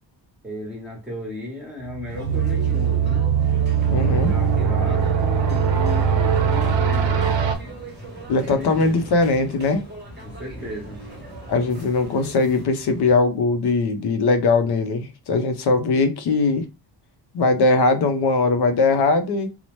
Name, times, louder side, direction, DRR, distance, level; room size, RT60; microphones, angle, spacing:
voice 1, 0.4-3.3 4.0-7.2 8.5-9.0 10.2-11.0, left 1 dB, 5° right, 1.0 m, -35 dB
sound 1, 1.8-7.6, right 7 dB, 75° right, 0.6 m, -21 dB
sound 2, 2.1-13.2, right 1 dB, 40° left, 0.9 m, -40 dB
sound 3, 2.1-12.7, right 2 dB, 25° right, 0.7 m, -42 dB
voice 2, 3.9-4.3 8.3-9.8 11.5-16.6 17.3-19.5, left 3 dB, 60° left, 0.5 m, -20 dB
2.8 x 2.0 x 3.0 m
wide cardioid pair, 180°, 44 cm